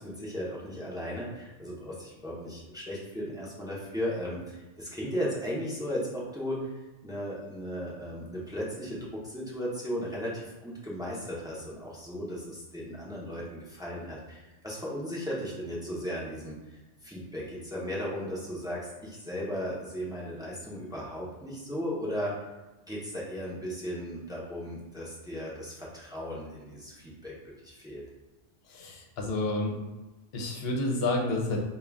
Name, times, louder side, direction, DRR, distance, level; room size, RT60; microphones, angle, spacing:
voice 1, 0.0-6.7 7.0-16.6 17.0-22.4 22.9-27.3 27.6-28.0, equal, 5° right, -6 dB, 0.6 m, -36 dB
voice 2, 28.7-29.7 30.3-31.6, left 2 dB, 60° left, 1 dB, 0.9 m, -29 dB
3.7 x 2.4 x 3.4 m, 1.1 s
omnidirectional pair, 1.2 m